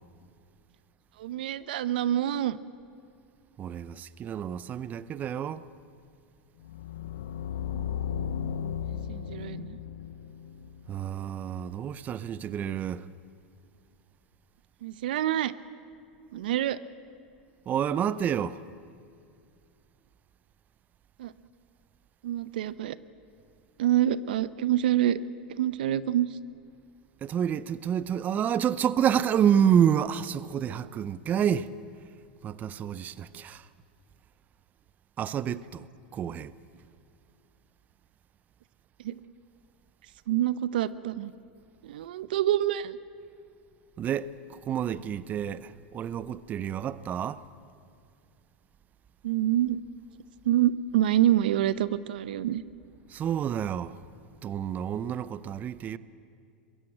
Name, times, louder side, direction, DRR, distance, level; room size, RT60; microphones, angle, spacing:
voice 1, 1.2-2.6 7.7-7.9 9.1-9.8 14.8-15.5 16.3-16.8 21.2-21.3 22.2-23.0 23.8-25.2 25.5-26.3 39.0-39.2 40.3-41.3 41.8-43.0 49.2-49.8 50.4-52.6, right 12 dB, 75° right, 0.6 m, -26 dB
voice 2, 3.6-5.7 10.9-13.1 17.7-18.6 27.2-31.7 32.4-33.7 35.2-35.9 36.1-36.5 44.0-47.4 53.1-54.0 54.4-56.0, right 9 dB, 35° right, 0.6 m, -28 dB
sound 1, 6.6-11.6, left 8 dB, 80° left, 0.6 m, -35 dB
22.0 x 15.5 x 8.9 m
hypercardioid pair, 100°, 5 cm